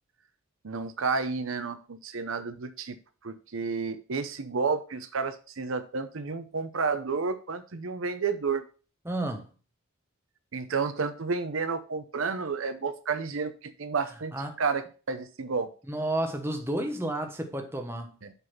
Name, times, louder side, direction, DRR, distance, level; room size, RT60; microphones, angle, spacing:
voice 1, 0.6-3.0 3.2-8.6 10.5-14.3 14.6-15.7 18.2-18.3, right 4 dB, 70° right, 0.7 m, -31 dB
voice 2, 9.0-9.4 14.3-14.6 15.9-18.1, right 1 dB, 10° right, 1.1 m, -31 dB
8.0 x 4.1 x 5.9 m
head